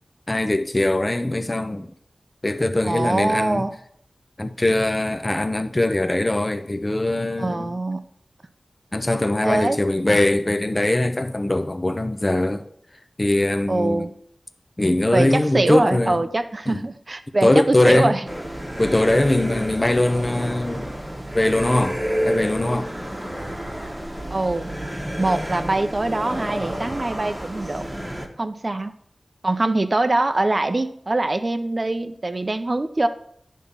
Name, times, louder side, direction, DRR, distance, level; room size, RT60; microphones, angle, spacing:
voice 1, 0.3-1.9 2.4-3.7 4.4-7.7 8.9-12.6 13.2-14.0 14.8-16.2 16.7-16.8 17.4-18.1 18.8-20.9 21.3-22.9, left 1 dB, 30° left, 0.7 m, -21 dB
voice 2, 2.8-3.7 7.4-8.0 9.4-9.8 13.7-14.1 15.1-18.3 23.8-23.9 24.3-24.7 25.2-27.8 28.4-28.9 29.4-33.1, right 2 dB, 45° right, 0.6 m, -23 dB
sound 1, 18.3-28.3, equal, 10° right, 1.3 m, -30 dB
10.5 x 3.7 x 5.6 m
cardioid pair, 45°, 0 cm